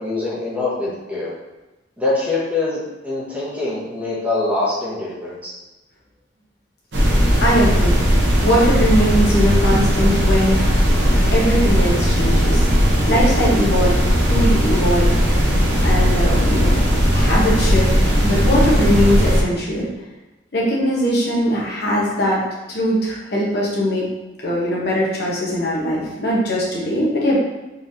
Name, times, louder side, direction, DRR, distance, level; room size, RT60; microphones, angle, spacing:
voice 1, 0.0-1.3 2.0-5.5, left 2 dB, 10° right, -7 dB, 1.1 m, -24 dB
sound 1, 6.9-19.4, equal, 75° right, 0.9 m, -17 dB
voice 2, 7.4-8.0 8.4-12.6 13.1-15.1 15.8-16.8 17.1-19.9 20.5-22.4 22.7-24.0 24.4-27.4, equal, 65° left, -5 dB, 1.0 m, -20 dB
4.0 x 3.3 x 2.7 m, 1.1 s
head